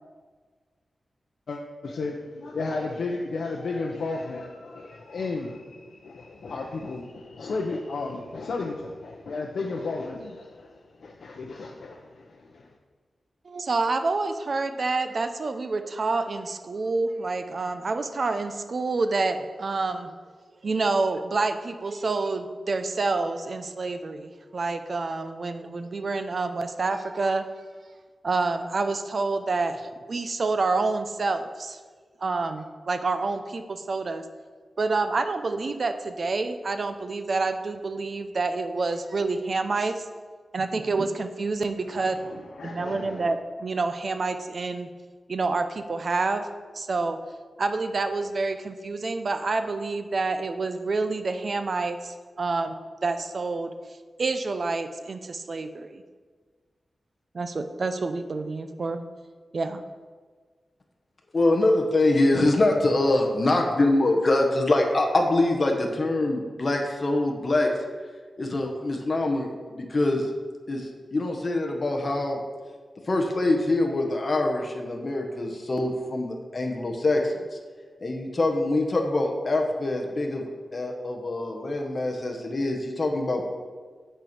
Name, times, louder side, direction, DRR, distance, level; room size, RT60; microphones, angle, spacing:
voice 1, 1.5-12.7 42.2-43.3, left 3 dB, 80° left, 0 dB, 0.7 m, -34 dB
voice 2, 13.4-20.1 20.6-27.5 28.2-31.8 32.2-34.3 34.8-40.1 40.5-42.2 42.6-44.9 45.3-46.5 46.7-47.2 47.6-53.7 54.2-56.0 57.3-59.0 59.5-59.8, right 3 dB, 50° right, 8 dB, 0.7 m, -28 dB
voice 3, 61.3-67.7 68.4-70.3 70.7-72.4 73.1-77.4 78.0-83.4, left 2 dB, 40° left, 2 dB, 1.2 m, -24 dB
9.2 x 4.5 x 6.7 m, 1.5 s
wide cardioid pair, 120°, 0 cm